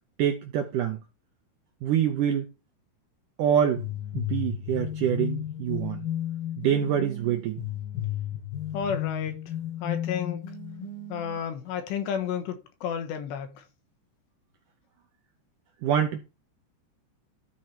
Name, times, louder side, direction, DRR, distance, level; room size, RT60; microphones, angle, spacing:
voice 1, 0.2-1.0 1.8-2.5 3.4-3.9 4.1-6.0 6.6-7.6 15.8-16.2, right 9 dB, 80° right, 1.9 m, -25 dB
sound 1, 3.8-11.4, left 10 dB, 70° left, 3.2 m, -33 dB
voice 2, 8.7-9.4 9.8-10.4 11.1-13.6, left 7 dB, 85° left, 3.4 m, -32 dB
13.0 x 4.6 x 4.3 m
omnidirectional pair, 4.8 m